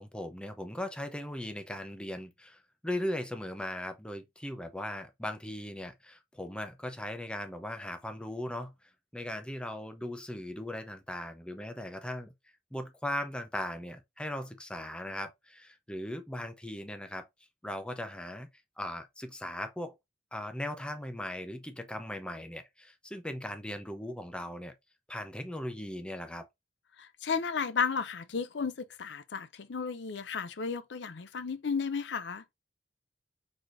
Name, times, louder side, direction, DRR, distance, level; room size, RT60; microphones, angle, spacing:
voice 1, 0.0-8.7 9.1-12.3 12.7-17.3 17.6-18.5 18.8-20.0 20.3-24.7 25.1-26.5, left 1 dB, 5° left, 0.7 m, -38 dB
voice 2, 27.0-32.4, left 5 dB, 75° left, 0.6 m, -33 dB
4.8 x 4.2 x 2.5 m
head